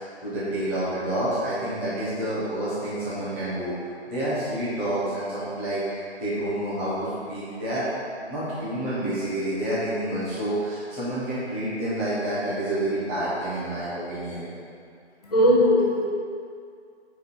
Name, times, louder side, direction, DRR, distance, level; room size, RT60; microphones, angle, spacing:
voice 1, 0.2-3.7 4.1-7.8 8.3-14.4, right 1 dB, 10° right, -11 dB, 1.1 m, -28 dB
voice 2, 15.2-16.1, equal, 35° left, -5 dB, 1.0 m, -19 dB
7.9 x 5.1 x 4.9 m, 2.2 s
hypercardioid pair, 170°, 34 cm